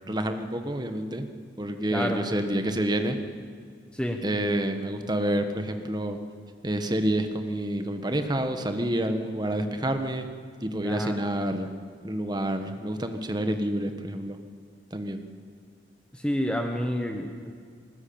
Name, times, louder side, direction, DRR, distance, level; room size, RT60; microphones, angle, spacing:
voice 1, 0.1-1.3 1.6-3.2 4.2-6.2 6.6-10.3 10.6-11.7 12.0-14.4 14.9-15.2, right 1 dB, 25° right, 7 dB, 1.4 m, -28 dB
voice 2, 10.8-11.2 16.1-17.5, equal, 5° left, 3 dB, 1.1 m, -29 dB
20.5 x 19.0 x 8.7 m, 2.1 s
head